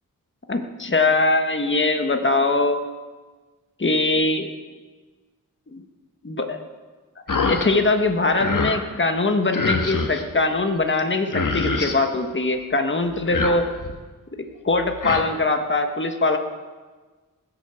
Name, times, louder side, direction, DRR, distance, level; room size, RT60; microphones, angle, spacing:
voice 1, 0.5-2.8 3.8-4.5 5.7-5.8 6.2-6.6 7.3-13.6 14.6-16.4, left 3 dB, 35° left, 5 dB, 1.5 m, -22 dB
sound 1, 7.3-7.7 8.0-8.8 9.5-10.2 11.0-11.1 11.3-12.0 13.1-14.0 14.7-15.2, left 3 dB, 65° left, 1.6 m, -25 dB
20.0 x 8.3 x 7.0 m, 1.3 s
wide cardioid pair, 65°, 35 cm